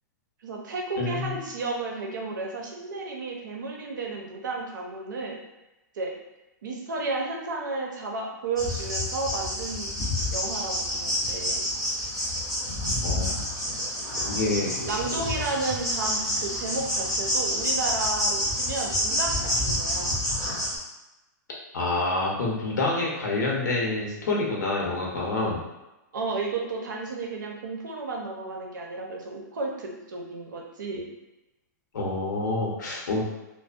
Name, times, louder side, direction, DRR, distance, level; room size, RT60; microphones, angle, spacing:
voice 1, 0.4-5.4 5.9-6.1 6.6-9.9 10.3-11.6 14.8-20.2 26.1-31.1, right 3 dB, 85° right, 0 dB, 0.6 m, -32 dB
voice 2, 1.0-1.4 13.0-13.4 14.3-14.8 21.7-25.6 31.9-33.2, left 2 dB, 70° left, -3 dB, 0.8 m, -27 dB
sound 1, 8.6-20.8, equal, 5° left, 0.7 m, -28 dB
2.5 x 2.1 x 2.4 m, 1.0 s
hypercardioid pair, 180°, 10 cm